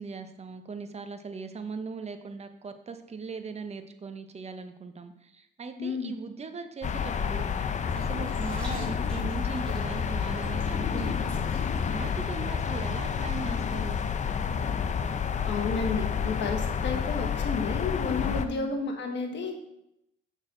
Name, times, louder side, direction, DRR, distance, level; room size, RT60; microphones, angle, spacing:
voice 1, 0.0-14.0 18.4-18.7, right 4 dB, 35° right, 8 dB, 0.8 m, -39 dB
voice 2, 5.8-6.1 15.5-19.6, left 4 dB, 65° left, 4 dB, 1.4 m, -31 dB
sound 1, 6.8-18.5, left 6 dB, 35° left, 0.5 m, -29 dB
sound 2, 7.9-12.1 12.4-12.5, equal, 5° left, 3.0 m, -50 dB
6.4 x 6.2 x 3.8 m, 0.82 s
cardioid pair, 90°, 20 cm